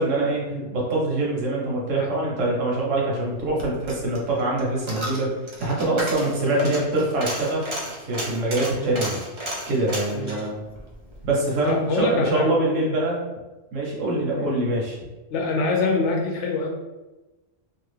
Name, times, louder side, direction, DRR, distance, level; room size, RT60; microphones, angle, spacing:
voice 1, 0.0-5.3 5.6-7.6 8.1-9.2 9.7-10.6 11.2-13.2 13.7-15.0, right 2 dB, 80° right, -3 dB, 1.2 m, -24 dB
Coin (dropping), 3.4-11.8 12.1-12.2, right 1 dB, 45° right, 0.3 m, -34 dB
voice 2, 6.2-6.8 8.8-8.9 10.1-10.3 11.6-12.5 14.3-14.6 15.3-16.7, left 3 dB, 70° left, 0 dB, 0.9 m, -25 dB
2.8 x 2.3 x 3.2 m, 1.1 s
omnidirectional pair, 1.3 m